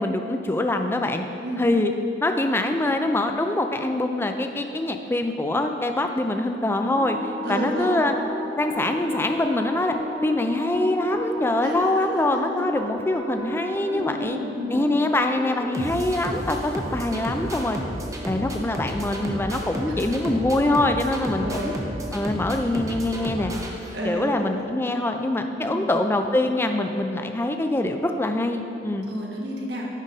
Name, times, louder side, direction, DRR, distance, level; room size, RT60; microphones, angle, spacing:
voice 1, 0.0-1.3 1.6-1.9 2.2-8.1 8.6-10.0 10.2-14.4 14.7-17.8 18.2-21.7 22.1-23.5 24.0-29.1, left 2 dB, 15° left, 5 dB, 0.4 m, -24 dB
Wind instrument woodwind instrument, 6.9-12.1, left 1 dB, 60° left, 1.2 m, -33 dB
voice 2, 7.4-8.0 11.6-12.7 13.9-14.9 19.9-20.1 21.4-21.8 23.9-24.7 25.6-25.9 29.1-29.9, equal, 65° right, -2 dB, 1.3 m, -32 dB
sound 1, 7.7-24.4, right 1 dB, 15° right, 0.7 m, -34 dB
9.8 x 3.9 x 5.3 m, 3.0 s
head